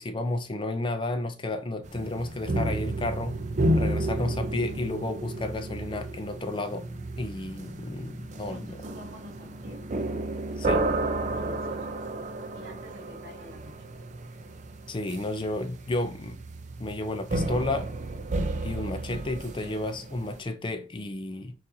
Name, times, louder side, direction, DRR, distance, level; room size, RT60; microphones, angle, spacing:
voice 1, 0.0-3.4 3.7-6.8 7.2-8.8 10.6-10.8 14.9-16.4 16.8-17.9 18.6-21.5, left 2 dB, 25° left, 0.4 m, -32 dB
sound 1, 1.8-20.4, right 1 dB, 40° right, 0.5 m, -32 dB
voice 2, 8.4-9.9 11.2-12.0 12.5-13.9, left 1 dB, 70° right, 1.9 m, -48 dB
6.0 x 2.6 x 2.7 m
head